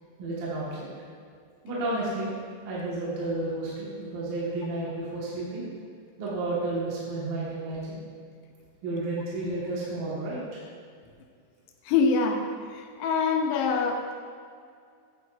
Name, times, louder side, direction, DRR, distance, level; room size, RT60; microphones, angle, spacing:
voice 1, 0.2-0.9 1.6-2.3 2.6-5.7 6.2-8.0 8.8-10.6, right 2 dB, 65° right, -7 dB, 2.9 m, -31 dB
voice 2, 11.9-14.2, left 5 dB, 90° left, 2 dB, 2.8 m, -25 dB
10.5 x 8.5 x 2.4 m, 2.2 s
omnidirectional pair, 4.9 m